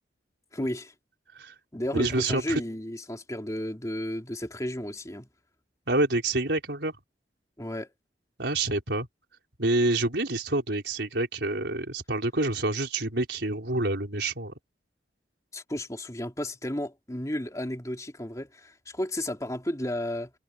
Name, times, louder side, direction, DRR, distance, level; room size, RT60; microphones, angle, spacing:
voice 1, 0.5-0.9 1.7-5.3 7.6-7.9 15.5-20.3, left 1 dB, 20° left, 3.2 m, -33 dB
voice 2, 1.9-2.6 5.9-6.9 8.4-9.1 9.6-14.5, right 2 dB, 80° right, 4.3 m, -27 dB
head